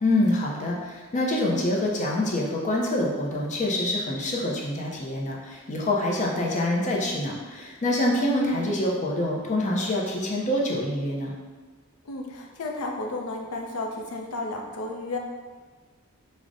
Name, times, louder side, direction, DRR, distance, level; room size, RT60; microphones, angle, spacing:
voice 1, 0.0-11.3, left 1 dB, 35° left, -2 dB, 0.5 m, -26 dB
voice 2, 12.0-15.2, left 2 dB, 85° left, 2 dB, 0.5 m, -33 dB
4.7 x 2.0 x 2.5 m, 1.4 s
head